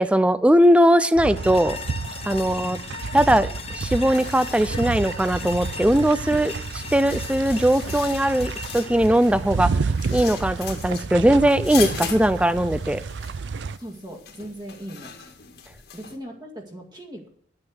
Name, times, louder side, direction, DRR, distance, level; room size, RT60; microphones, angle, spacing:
voice 1, 0.0-1.8 2.3-2.8 3.1-9.7 10.1-13.0, right 1 dB, 5° right, 15 dB, 0.4 m, -20 dB
sound 1, 1.1-13.8, right 4 dB, 90° right, 0.5 m, -31 dB
sound 2, 1.3-10.4, left 5 dB, 35° left, 0.8 m, -38 dB
sound 3, 4.0-16.2, left 7 dB, 65° left, 1.8 m, -39 dB
voice 2, 13.8-15.1 15.9-17.3, equal, 25° right, 3 dB, 2.0 m, -39 dB
11.0 x 8.7 x 6.4 m, 0.64 s
head